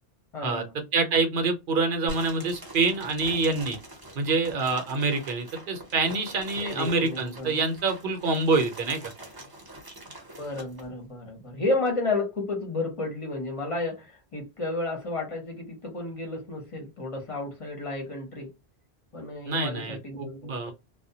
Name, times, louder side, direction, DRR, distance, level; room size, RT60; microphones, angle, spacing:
voice 1, 0.3-0.7 6.6-7.6 10.4-18.5 19.1-20.7, left 2 dB, 35° left, 0.7 m, -32 dB
voice 2, 0.9-3.8 4.1-9.0 19.5-20.7, right 3 dB, 60° right, 0.8 m, -26 dB
sound 1, 2.1-10.9, right 1 dB, 25° right, 0.6 m, -44 dB
2.2 x 2.1 x 2.7 m
omnidirectional pair, 1.1 m